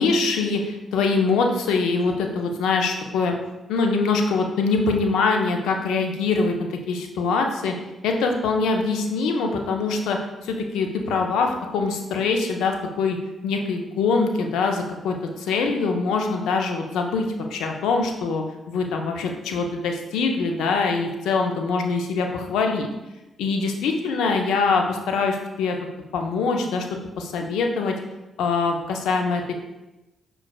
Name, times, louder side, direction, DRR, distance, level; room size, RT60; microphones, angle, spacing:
voice 1, 0.0-3.4 3.7-7.7 8.0-13.2 13.4-22.9 23.4-25.8 26.1-26.9 27.2-28.0 28.4-29.5, left 4 dB, 75° left, 3 dB, 0.4 m, -23 dB
5.8 x 2.3 x 2.2 m, 0.99 s
hypercardioid pair, 40°, 0 cm